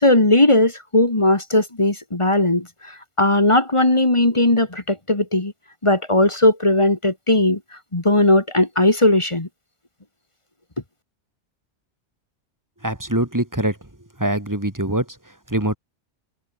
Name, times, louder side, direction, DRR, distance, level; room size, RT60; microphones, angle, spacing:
voice 1, 0.0-2.7 3.2-5.5 5.8-7.6 7.9-9.5, left 1 dB, 25° left, 2.0 m, -17 dB
voice 2, 12.8-13.8 14.2-15.0 15.5-15.8, right 1 dB, 15° right, 2.9 m, -23 dB
omnidirectional pair, 1.2 m